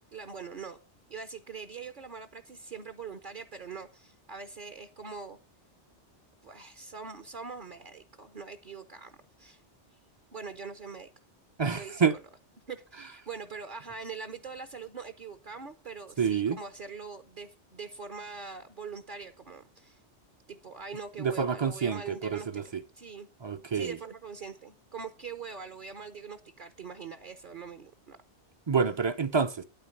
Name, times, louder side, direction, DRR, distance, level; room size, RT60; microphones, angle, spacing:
voice 1, 0.1-0.8 1.1-5.4 6.4-9.6 10.3-11.1 11.7-12.0 12.7-20.0 20.5-23.3 23.7-28.2, right 5 dB, 50° right, 0.9 m, -43 dB
voice 2, 11.6-12.2 16.2-16.6 21.2-22.8 23.4-24.0 28.7-29.6, right 6 dB, 35° right, 0.4 m, -28 dB
9.5 x 8.9 x 5.2 m
omnidirectional pair, 1.1 m